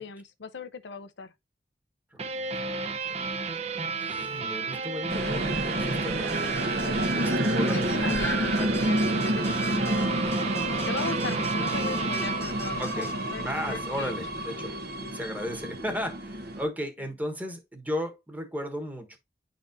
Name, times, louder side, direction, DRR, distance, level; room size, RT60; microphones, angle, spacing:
voice 1, 0.0-1.3 7.7-14.1 15.0-15.1, left 5 dB, 85° left, 0.6 m, -38 dB
voice 2, 2.1-3.3 3.5-6.6 7.1-8.3 8.6-8.8 12.8-13.1 13.4-14.8 15.1-19.2, equal, 10° right, 1.3 m, -35 dB
sound 1, 2.2-13.5, right 4 dB, 35° right, 0.8 m, -33 dB
sound 2, 5.1-16.6, right 1 dB, 60° right, 1.1 m, -29 dB
sound 3, 6.3-13.2, left 2 dB, 15° left, 0.8 m, -45 dB
10.0 x 4.1 x 2.6 m
head